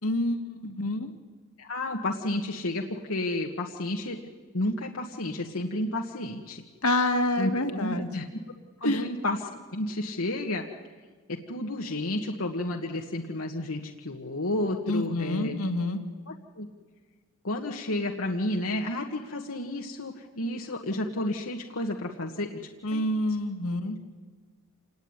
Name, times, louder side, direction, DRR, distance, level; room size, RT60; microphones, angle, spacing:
voice 1, 0.0-1.1 6.8-8.1 8.8-9.1 14.9-16.0 22.8-24.0, left 1 dB, 90° left, 5 dB, 2.3 m, -27 dB
voice 2, 1.6-4.2 4.5-6.6 7.4-8.2 8.8-10.6 11.5-15.6 16.3-16.7 17.4-22.6 22.9-23.0, left 1 dB, 75° left, 1 dB, 1.6 m, -31 dB
27.0 x 19.5 x 9.8 m, 1.4 s
head